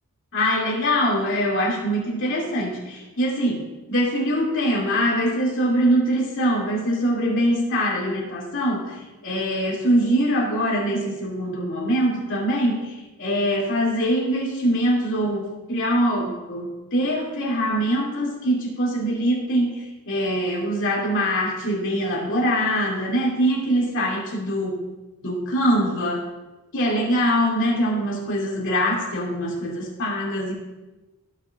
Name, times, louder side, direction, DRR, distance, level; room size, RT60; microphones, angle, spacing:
voice 1, 0.3-24.9 25.2-26.2 26.7-30.5, equal, 60° left, -4 dB, 2.6 m, -23 dB
16.5 x 6.6 x 2.5 m, 1.1 s
head